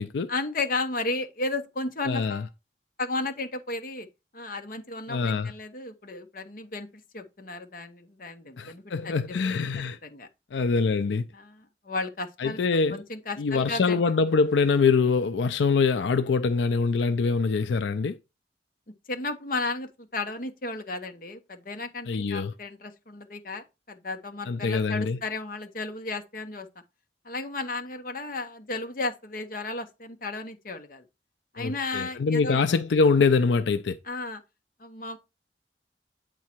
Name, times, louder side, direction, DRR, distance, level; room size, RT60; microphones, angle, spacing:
voice 1, 0.3-2.5 3.0-4.1 4.3-6.9 7.1-9.2 9.5-9.6 10.0-10.3 11.3-12.6 12.9-14.0 19.1-26.7 27.2-31.0 31.5-32.6 34.0-34.4 34.8-35.2, left 2 dB, 50° left, 1.0 m, -34 dB
voice 2, 2.1-2.4 5.1-5.5 8.6-10.0 10.5-11.2 12.4-13.0 13.4-18.2 22.1-22.5 24.5-25.2 31.6-34.0, left 4 dB, 90° left, 0.5 m, -24 dB
8.4 x 3.8 x 4.4 m
head